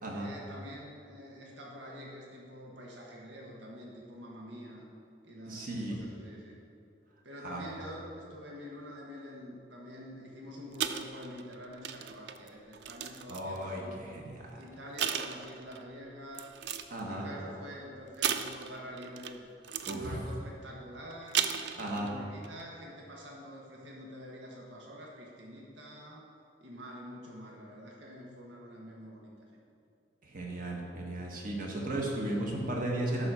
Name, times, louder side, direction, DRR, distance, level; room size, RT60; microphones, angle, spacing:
voice 1, 0.1-4.8 5.2-6.6 7.2-14.2 14.5-16.5 17.0-19.5 19.8-21.5 21.9-26.3 26.6-29.3, equal, 85° right, -2 dB, 1.4 m, -46 dB
voice 2, 5.5-6.0 7.4-7.7 13.3-14.6 16.9-17.2 19.8-20.2 21.8-22.1 30.2-33.3, right 1 dB, 50° right, -2 dB, 1.7 m, -35 dB
sound 1, 10.7-13.6 14.4-14.6 15.0-15.8 16.4-17.0 18.2-19.4 19.6-20.1 21.1-22.1 22.4-22.6, right 8 dB, 70° right, 0.5 m, -35 dB
11.0 x 4.3 x 6.3 m, 2.5 s
head